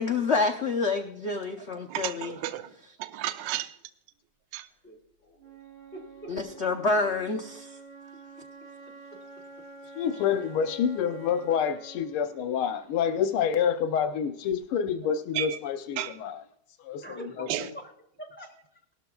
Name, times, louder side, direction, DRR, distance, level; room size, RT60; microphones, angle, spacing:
voice 1, 0.0-2.4 6.3-7.8, left 3 dB, 65° left, 0.6 m, -28 dB
voice 2, 1.9-2.7 3.0-3.7 4.5-4.7 15.3-15.6 16.0-16.2 17.5-17.7, right 13 dB, 70° right, 1.3 m, -32 dB
voice 3, 4.8-5.6 5.9-6.3 17.0-17.5 17.7-17.9 18.2-18.8, right 1 dB, 5° left, 2.6 m, -44 dB
Wind instrument woodwind instrument, 5.4-13.4, right 3 dB, 85° right, 2.4 m, -48 dB
voice 4, 9.9-16.4 16.8-17.7, left 7 dB, 90° left, 1.7 m, -28 dB
18.5 x 12.5 x 2.3 m
omnidirectional pair, 2.3 m